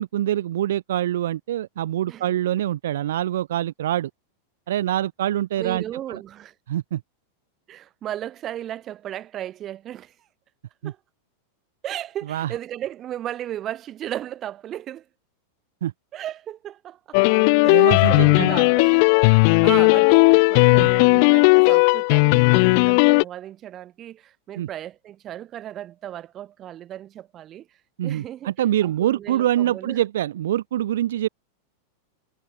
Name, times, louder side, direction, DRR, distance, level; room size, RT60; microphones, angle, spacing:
voice 1, 0.0-4.1 4.7-5.8 6.1-6.2 6.7-7.0 10.8-10.9 12.3-12.5 15.8-15.9 17.6-18.5 20.8-20.9 24.6-24.7 28.0-31.3, right 12 dB, 60° right, 1.0 m, -25 dB
voice 2, 5.6-6.5 7.7-10.1 10.8-11.0 11.8-15.1 16.1-17.2 17.6-27.7 28.0-28.5 28.8-30.0, right 12 dB, 30° right, 5.9 m, -35 dB
sound 1, 17.1-23.2, left 33 dB, 45° left, 0.5 m, -16 dB
figure-of-eight pair, 90°, 0 cm